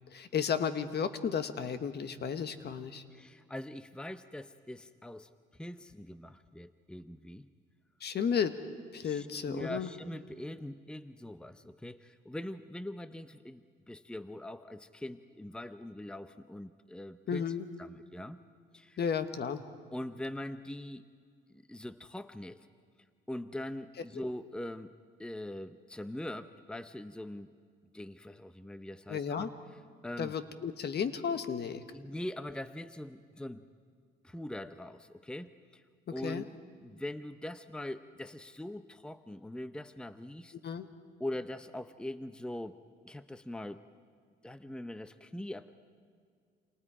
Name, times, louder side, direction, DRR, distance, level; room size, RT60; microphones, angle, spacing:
voice 1, 0.1-3.0 8.0-8.5 8.9-9.9 17.3-17.6 19.0-19.6 29.1-29.5 30.2-31.8 36.2-36.4 40.6-40.9, left 7 dB, 55° left, 10 dB, 1.5 m, -33 dB
voice 2, 3.1-7.5 9.0-17.4 17.8-18.4 18.7-19.0 19.9-21.0 21.5-22.7 23.3-24.9 25.2-27.5 27.9-29.5 30.0-30.3 31.9-33.7 34.2-35.8 36.1-36.5 36.8-40.6 41.2-42.8 43.0-43.8 44.4-45.7, left 1 dB, 5° left, 12 dB, 0.8 m, -42 dB
28.5 x 28.0 x 5.0 m, 2.1 s
cardioid pair, 90°, 20 cm